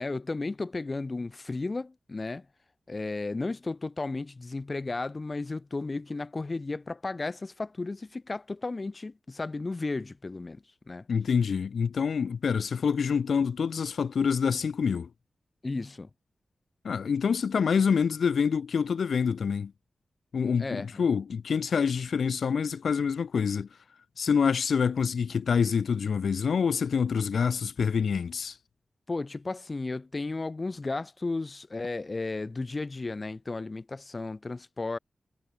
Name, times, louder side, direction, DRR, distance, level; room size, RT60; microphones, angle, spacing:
voice 1, 0.0-2.5 2.9-11.1 15.6-16.1 20.6-21.0 29.1-35.0, left 3 dB, 30° left, 1.1 m, -34 dB
voice 2, 11.1-15.1 16.8-19.7 20.3-23.7 24.2-28.6, left 6 dB, 80° left, 0.8 m, -26 dB
wide cardioid pair, 145°, 0 cm